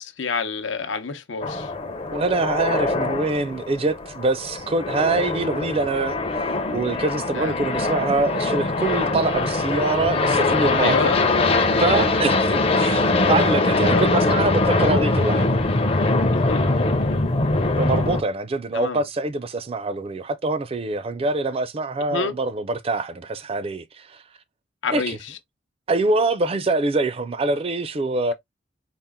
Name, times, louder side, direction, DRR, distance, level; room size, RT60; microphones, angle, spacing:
voice 1, 0.0-1.7 7.4-7.6 10.8-11.2 13.9-14.1 16.5-16.7 18.7-19.0 22.1-22.3 24.8-25.2, left 5 dB, 85° left, 0.7 m, -27 dB
sound 1, 1.4-18.2, left 2 dB, 30° left, 0.5 m, -22 dB
voice 2, 2.1-11.1 11.8-15.6 17.8-24.2 24.9-25.2 25.9-28.3, right 3 dB, 30° right, 0.4 m, -24 dB
4.2 x 2.0 x 3.5 m
head